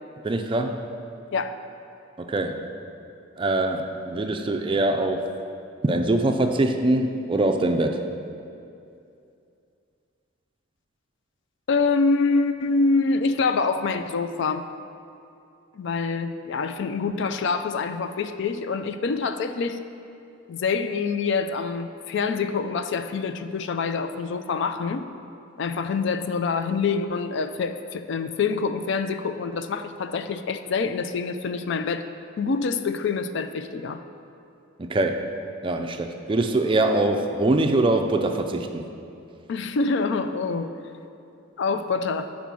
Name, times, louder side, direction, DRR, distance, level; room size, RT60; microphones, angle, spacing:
voice 1, 0.2-0.8 2.2-2.7 3.4-5.3 5.8-8.0 34.8-35.3 35.6-38.9, right 2 dB, 25° right, 5 dB, 0.4 m, -23 dB
voice 2, 11.7-14.7 15.7-19.8 20.5-25.1 25.6-32.1 32.4-34.0 39.5-40.7 41.6-42.3, left 4 dB, 60° left, 10 dB, 0.3 m, -26 dB
6.9 x 5.1 x 6.0 m, 2.6 s
head